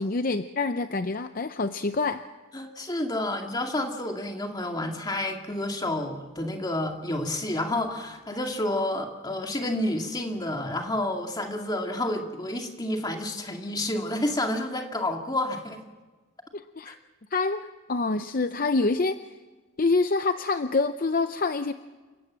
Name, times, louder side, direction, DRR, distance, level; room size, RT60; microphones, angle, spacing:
voice 1, 0.0-2.2 16.5-16.9 17.3-19.2 19.8-21.7, left 3 dB, 45° left, 10 dB, 0.6 m, -26 dB
voice 2, 2.5-15.8 16.9-17.0, left 1 dB, 20° left, 3 dB, 2.3 m, -29 dB
29.0 x 16.5 x 7.5 m, 1.3 s
head